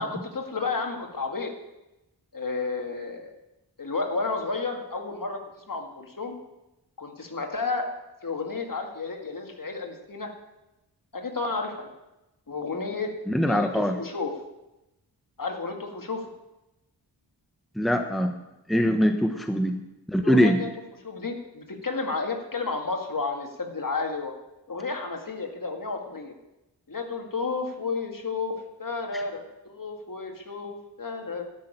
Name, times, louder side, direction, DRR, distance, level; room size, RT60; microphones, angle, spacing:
voice 1, 0.0-1.5 2.3-3.3 3.8-5.4 5.7-6.4 7.0-7.9 8.2-10.3 11.1-11.9 12.5-13.1 13.5-14.3 15.4-16.2 20.2-20.7 21.0-24.3 24.7-26.3 26.9-28.5 28.8-31.5, left 4 dB, 50° left, 3 dB, 2.1 m, -31 dB
voice 2, 13.3-14.0 17.8-18.3 18.7-19.8 20.1-20.6 29.1-29.2, equal, ahead, 6 dB, 1.0 m, -22 dB
12.5 x 6.5 x 9.0 m, 0.96 s
wide cardioid pair, 60°, 43 cm